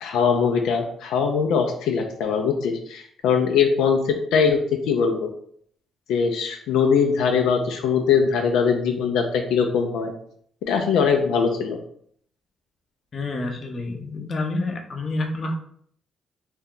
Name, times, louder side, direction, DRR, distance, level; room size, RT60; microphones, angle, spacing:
voice 1, 0.0-4.6 4.9-5.3 6.1-10.1 10.6-11.8, left 6 dB, 85° left, 3 dB, 0.4 m, -21 dB
voice 2, 13.1-15.6, left 2 dB, 45° left, 3 dB, 0.6 m, -28 dB
2.6 x 2.2 x 3.7 m, 0.63 s
cardioid pair, 90°, 0 cm